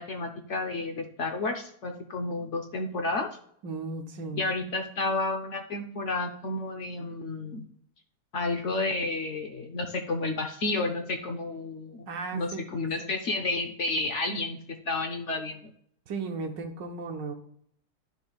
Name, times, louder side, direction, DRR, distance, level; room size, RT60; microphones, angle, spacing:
voice 1, 0.0-3.3 4.4-7.7 8.3-14.6 14.8-15.7, left 2 dB, 55° left, 4 dB, 0.9 m, -31 dB
voice 2, 3.6-4.4 12.1-12.9 16.1-17.3, right 4 dB, 85° right, 5 dB, 1.7 m, -35 dB
11.5 x 6.7 x 2.4 m, 0.66 s
omnidirectional pair, 1.8 m